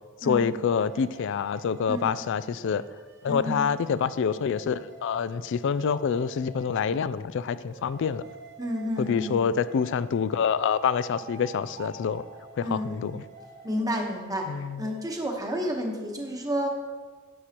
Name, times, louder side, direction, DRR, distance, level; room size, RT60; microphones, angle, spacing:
voice 1, 0.2-2.8 3.2-8.2 9.0-12.2 12.6-13.2 14.5-14.9, left 6 dB, 65° left, 16 dB, 0.3 m, -27 dB
sound 1, 0.7-7.0 7.6-15.4, right 4 dB, 55° right, 1.0 m, -48 dB
voice 2, 3.3-3.7 8.6-9.5 12.6-13.1 13.6-14.5 14.8-16.7, equal, 20° right, 1 dB, 1.1 m, -30 dB
11.0 x 8.0 x 2.9 m, 1.4 s
head